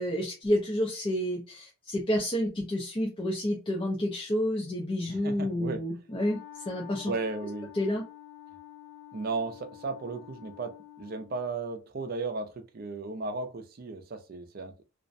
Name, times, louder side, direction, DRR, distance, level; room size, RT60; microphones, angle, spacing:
voice 1, 0.0-6.4 6.7-7.1 7.7-8.0, equal, 25° left, 0.4 m, -29 dB
voice 2, 5.1-5.8 7.1-7.7 9.1-14.8, right 3 dB, 45° right, 0.4 m, -35 dB
Wind instrument woodwind instrument, 6.0-11.4, left 12 dB, 55° left, 0.9 m, -49 dB
2.4 x 2.0 x 2.5 m
head